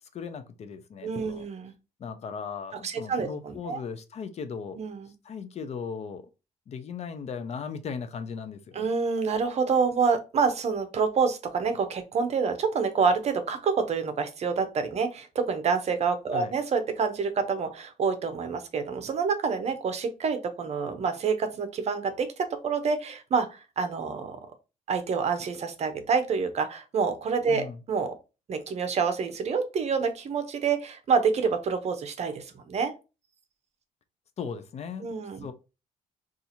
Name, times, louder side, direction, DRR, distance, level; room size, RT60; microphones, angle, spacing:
voice 1, 0.1-1.5 2.0-4.8 5.2-6.3 6.7-8.9 16.3-16.5 27.5-27.8 34.4-35.1 35.4-35.5, left 6 dB, 45° left, 0.5 m, -37 dB
voice 2, 1.0-1.7 2.8-3.8 4.8-5.1 8.7-24.4 24.9-28.1 28.5-32.9 35.0-35.5, right 5 dB, 45° right, 0.6 m, -27 dB
2.7 x 2.4 x 4.1 m
cardioid pair, 120°, 15 cm